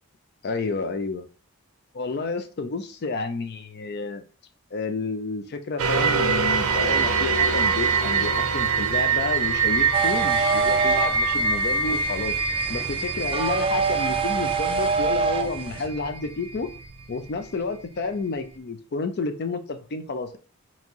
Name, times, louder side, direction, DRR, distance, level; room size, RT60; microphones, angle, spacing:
voice 1, 0.4-1.2 1.9-4.2 4.7-12.3 12.7-16.7 17.1-20.4, left 3 dB, 45° left, 9 dB, 0.4 m, -30 dB
sound 1, 5.8-16.9 17.4-17.5, right 5 dB, 75° right, 0.6 m, -24 dB
sound 2, 9.9-15.9, right 5 dB, 25° right, 0.3 m, -26 dB
4.4 x 2.9 x 2.8 m, 0.37 s
head